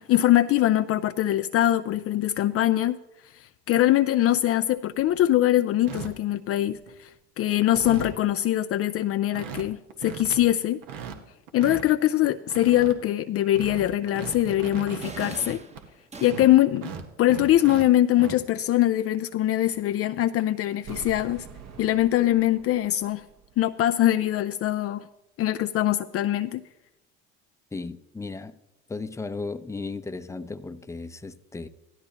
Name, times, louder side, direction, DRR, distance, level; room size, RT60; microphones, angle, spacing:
voice 1, 0.0-3.0 3.3-7.1 7.4-10.8 11.5-15.6 16.2-16.9 17.2-21.5 21.8-23.2 23.6-25.1 25.4-26.6, left 13 dB, 45° left, 0.5 m, -22 dB
sound 1, 4.4-4.5 4.9-5.3 5.9-6.1 6.7-7.1 7.4-7.5 7.7-8.2 8.7-8.8 9.0-9.1 9.3-9.6 9.9-10.4 10.8-11.8 12.2-12.9 13.4-15.9 16.2-17.8 18.1-18.4 19.7-19.8 20.3-20.4 21.6-21.8, right 7 dB, 70° right, 1.6 m, -38 dB
sound 2, 15.0-16.8, right 3 dB, 20° right, 1.1 m, -42 dB
sound 3, 20.8-23.7 24.0-24.1, right 6 dB, 50° right, 1.5 m, -45 dB
voice 2, 27.7-28.5 28.9-31.7, left 3 dB, 10° left, 0.7 m, -35 dB
15.5 x 12.0 x 3.0 m
hypercardioid pair, 75°, 34 cm